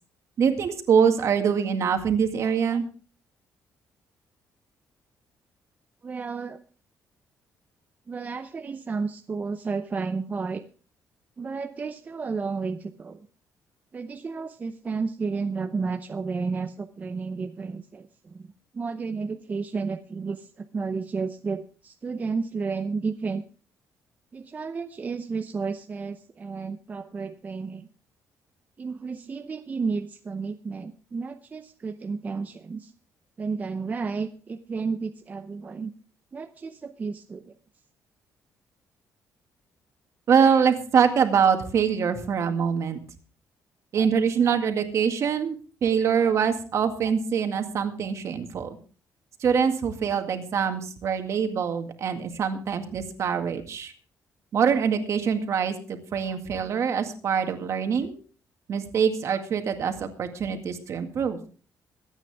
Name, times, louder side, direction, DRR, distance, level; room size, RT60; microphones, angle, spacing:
voice 1, 0.4-2.8 40.3-43.0 43.9-48.7 49.4-53.9 54.5-58.1 58.7-61.4, right 7 dB, 50° right, 6 dB, 2.0 m, -24 dB
voice 2, 6.0-6.6 8.1-10.6 11.4-13.3 13.9-18.5 18.7-23.4 24.3-27.9 28.8-32.9 33.4-35.9 36.3-37.5, right 4 dB, 25° right, 7 dB, 0.7 m, -32 dB
24.0 x 9.0 x 3.5 m, 0.39 s
cardioid pair, 145°, 6 cm